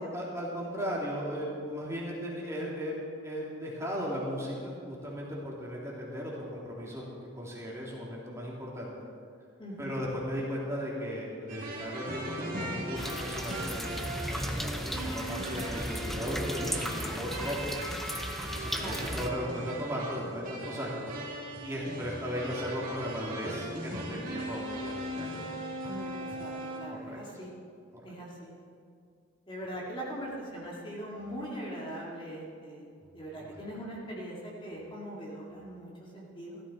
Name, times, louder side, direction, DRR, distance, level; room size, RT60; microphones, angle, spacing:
voice 1, 0.1-2.9 3.2-7.1 7.3-8.9 9.8-14.4 14.7-17.7 18.4-21.0 21.6-25.3 26.9-27.2 27.9-28.0 33.0-33.8, equal, 15° right, -5 dB, 2.8 m, -37 dB
voice 2, 9.6-10.0 18.8-19.0 25.8-27.5 28.0-28.5 29.5-32.9 33.1-36.6, equal, 25° left, -4 dB, 2.3 m, -41 dB
sound 1, 11.5-26.8, right 1 dB, 45° right, 2.7 m, -38 dB
sound 2, 12.9-19.3, equal, ahead, 0.7 m, -36 dB
15.5 x 13.5 x 4.2 m, 2.2 s
head